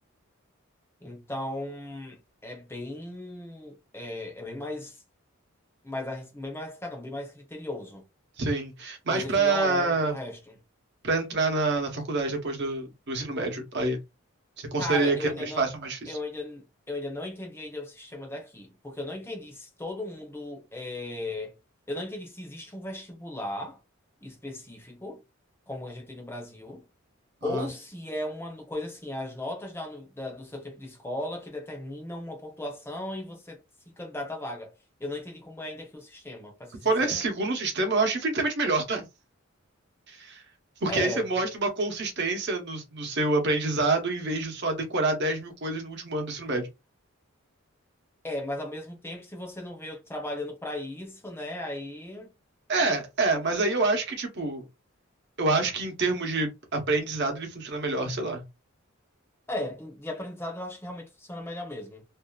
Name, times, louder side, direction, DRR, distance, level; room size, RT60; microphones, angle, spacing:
voice 1, 1.0-5.0 5.8-8.0 9.1-10.6 14.8-15.7 16.1-21.5 21.9-23.8 24.2-25.2 25.7-26.9 27.4-33.6 33.9-34.7 35.0-37.2 40.9-41.3 48.2-52.3 59.5-62.0, left 1 dB, 10° left, 0.8 m, -36 dB
voice 2, 8.4-10.1 11.0-14.0 14.6-16.2 27.4-27.7 36.8-39.1 40.1-40.4 40.8-46.7 52.7-54.6 55.4-58.4, right 3 dB, 55° right, 0.9 m, -27 dB
2.6 x 2.4 x 2.3 m
head